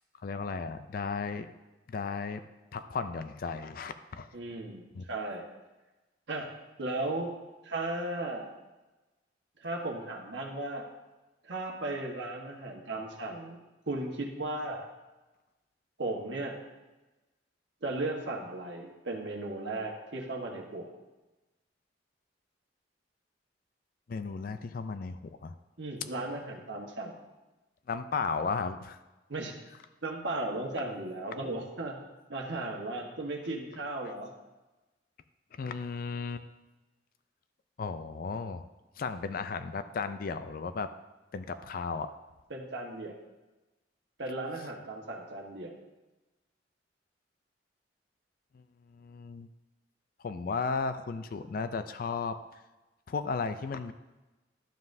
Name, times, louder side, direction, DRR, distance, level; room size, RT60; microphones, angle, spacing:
voice 1, 0.2-1.5 1.9-2.4 2.7-4.3 4.9-5.0 24.1-25.5 27.9-29.0 31.4-31.5 34.0-34.1 35.5-36.5 37.8-38.7 39.0-40.9 41.3-42.1 48.5-48.6 48.9-49.5 50.2-52.4 53.1-53.9, left 4 dB, 50° left, 11 dB, 0.4 m, -35 dB
voice 2, 4.3-5.4 6.3-6.5 6.8-7.3 7.6-8.5 9.6-10.8 11.4-13.6 13.9-14.8 16.0-16.6 17.8-20.9 25.8-27.2 29.3-29.5 30.0-32.0 32.3-34.3 42.5-43.2 44.2-45.8, right 2 dB, 75° right, 0 dB, 1.3 m, -36 dB
11.5 x 7.3 x 2.7 m, 1.1 s
head